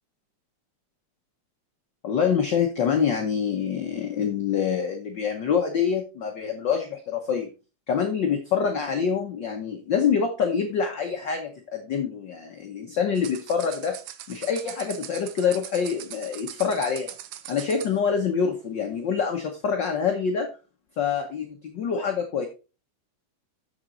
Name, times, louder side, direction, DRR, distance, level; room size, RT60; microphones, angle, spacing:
voice 1, 2.0-7.5 7.9-14.0 14.3-17.1 17.5-20.5 21.0-22.5, left 6 dB, 65° left, 3 dB, 1.1 m, -26 dB
sound 1, 13.2-18.0, right 12 dB, 85° right, 2.1 m, -41 dB
7.4 x 7.2 x 3.8 m, 0.31 s
omnidirectional pair, 3.4 m